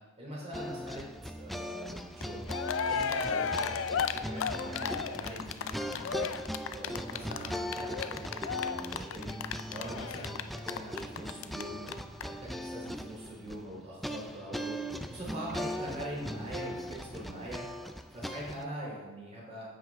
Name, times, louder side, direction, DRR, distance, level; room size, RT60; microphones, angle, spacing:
voice 1, 0.2-1.0 1.3-2.5 2.9-3.7 4.1-6.3 6.7-9.3 9.6-11.8 12.2-14.7 15.1-17.6 18.1-19.7, equal, 30° right, -4 dB, 3.1 m, -42 dB
sound 1, 0.5-18.6, equal, ahead, 0.3 m, -40 dB
Cheering, 2.2-2.3 2.5-11.6 11.9-12.0 12.2-12.3, left 6 dB, 80° left, 0.4 m, -34 dB
9.9 x 7.9 x 3.5 m, 1.2 s
head